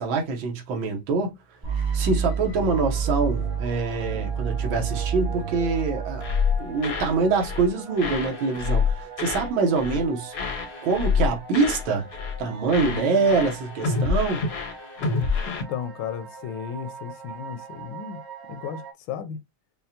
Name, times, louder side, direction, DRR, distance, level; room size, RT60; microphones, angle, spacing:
voice 1, 0.0-1.3 1.9-6.2 6.6-10.3 10.8-12.1 12.4-14.4, right 4 dB, 80° right, 1.7 m, -25 dB
sound 1, 1.6-7.6, right 7 dB, 30° right, 0.4 m, -29 dB
sound 2, 2.4-18.9, right 5 dB, 50° right, 0.8 m, -42 dB
sound 3, 6.2-7.1 7.4-7.7 8.0-9.5 9.7-10.0 10.3-11.9 12.1-12.4 12.7-15.6, left 5 dB, 60° left, 0.6 m, -27 dB
voice 2, 12.8-13.4 15.5-18.2 18.5-19.4, left 8 dB, 85° left, 1.4 m, -34 dB
5.3 x 2.2 x 2.7 m
omnidirectional pair, 2.1 m